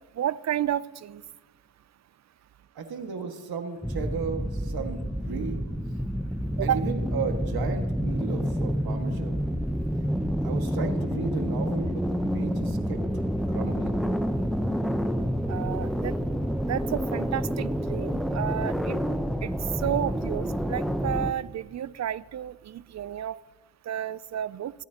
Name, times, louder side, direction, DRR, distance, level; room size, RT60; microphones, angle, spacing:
voice 1, 0.2-1.2 6.6-6.9 15.5-16.2 16.7-19.0 19.4-19.5 19.8-23.4 23.9-24.7, right 11 dB, 40° right, 19 dB, 0.4 m, -31 dB
voice 2, 2.8-5.6 6.6-9.4 10.4-12.0 12.3-13.0 13.5-14.0, right 5 dB, 60° right, 5 dB, 1.9 m, -35 dB
sound 1, 3.8-21.3, equal, ahead, 0.8 m, -28 dB
24.0 x 9.3 x 2.9 m, 1.3 s
supercardioid pair, 50°, 42 cm